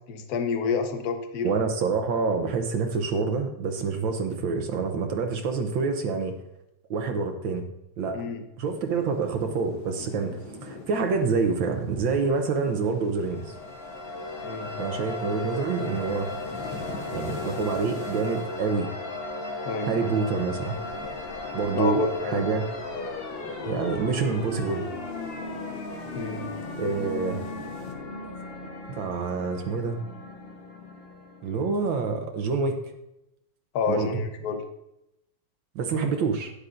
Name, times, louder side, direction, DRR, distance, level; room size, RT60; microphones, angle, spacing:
voice 1, 0.1-1.5 8.1-8.4 14.4-14.7 19.6-20.0 21.7-22.6 26.1-26.4 33.7-34.6, left 5 dB, 55° left, 6 dB, 1.3 m, -29 dB
voice 2, 1.4-6.4 6.9-7.7 8.0-8.2 8.6-13.5 14.8-16.3 17.1-18.9 19.8-20.8 21.5-22.6 23.7-24.9 26.8-27.4 29.0-30.0 31.4-32.8 33.9-34.2 35.7-36.5, right 4 dB, 70° right, 5 dB, 1.6 m, -27 dB
sound 1, 8.7-28.0, left 4 dB, 75° left, 1.8 m, -45 dB
sound 2, 13.2-31.8, left 2 dB, 40° left, 0.9 m, -36 dB
11.5 x 9.7 x 2.5 m, 0.87 s
omnidirectional pair, 2.3 m